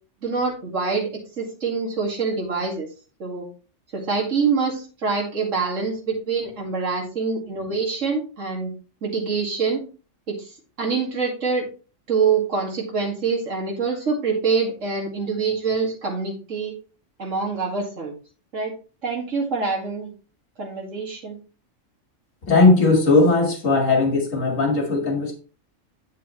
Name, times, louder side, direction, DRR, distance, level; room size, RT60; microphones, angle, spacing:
voice 1, 0.2-1.1 1.4-2.9 3.2-3.5 3.9-8.7 9.0-9.8 10.3-10.5 10.8-11.7 12.1-16.7 17.2-18.1 18.5-18.7 19.0-20.1 20.6-21.4, right 5 dB, 70° right, 2.5 m, -25 dB
voice 2, 22.5-25.3, left 3 dB, 80° left, 2.3 m, -18 dB
8.3 x 7.7 x 3.1 m
omnidirectional pair, 1.3 m